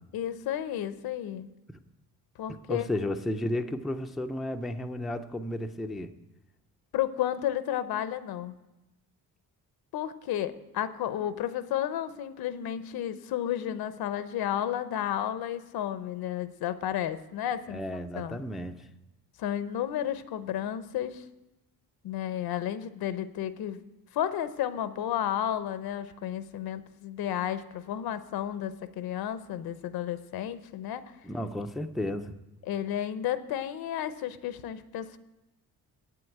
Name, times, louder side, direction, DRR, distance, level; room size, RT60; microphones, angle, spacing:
voice 1, 0.1-1.5 2.4-2.8 6.9-8.6 9.9-17.8 18.1-18.4 19.4-21.2 22.0-23.8 24.1-31.0 32.6-35.2, left 11 dB, 85° left, 13 dB, 0.8 m, -32 dB
voice 2, 2.7-6.1 17.7-18.9 31.2-32.4, left 1 dB, ahead, 6 dB, 0.3 m, -33 dB
8.5 x 7.7 x 9.0 m, 1.0 s
cardioid pair, 170°, 36 cm